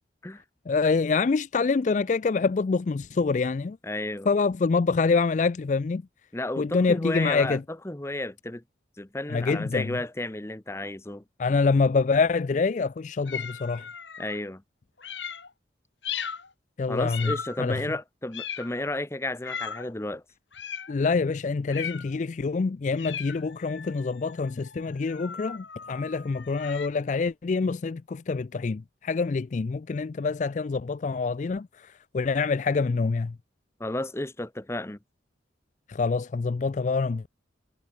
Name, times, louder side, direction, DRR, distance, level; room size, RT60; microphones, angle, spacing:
voice 1, 0.7-3.8 4.3-6.0 6.6-7.6 9.3-9.9 11.4-13.8 16.8-17.3 17.6-17.8 20.9-33.3 35.9-37.3, left 4 dB, 40° left, 0.4 m, -26 dB
voice 2, 3.8-4.3 6.3-8.6 9.0-11.2 14.2-14.6 16.9-20.2 33.8-35.0, left 1 dB, 15° left, 0.8 m, -32 dB
sound 1, 13.3-14.4 15.0-15.5 16.0-16.5 17.1-17.7 18.3-18.9 19.4-19.9 20.5-21.0 21.7-22.2 23.0-26.9, left 7 dB, 85° left, 4.3 m, -37 dB
head